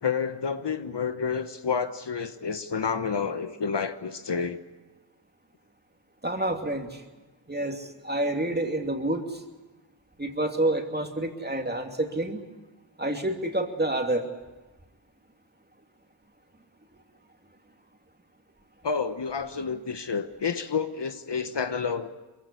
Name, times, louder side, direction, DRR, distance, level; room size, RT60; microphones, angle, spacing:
voice 1, 0.0-4.6 18.8-22.1, left 6 dB, 60° left, 9 dB, 1.2 m, -29 dB
voice 2, 6.2-7.0 7.5-9.3 10.2-12.4 13.0-14.2, right 1 dB, 20° right, 3 dB, 2.8 m, -28 dB
23.0 x 16.0 x 9.8 m, 1.2 s
cardioid pair, 55°, 48 cm